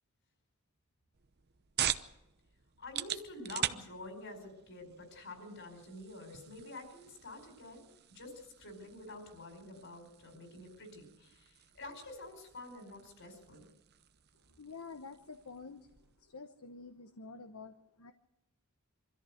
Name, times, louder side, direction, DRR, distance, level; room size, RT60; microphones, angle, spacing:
sound 1, 1.1-16.3, right 10 dB, 45° right, 0.8 m, -44 dB
voice 1, 2.8-13.7 14.5-14.6, left 2 dB, 55° left, 6 dB, 5.0 m, -48 dB
voice 2, 14.6-15.9 16.2-18.1, left 4 dB, 75° left, 8 dB, 1.0 m, -49 dB
24.5 x 14.0 x 7.9 m, 0.94 s
head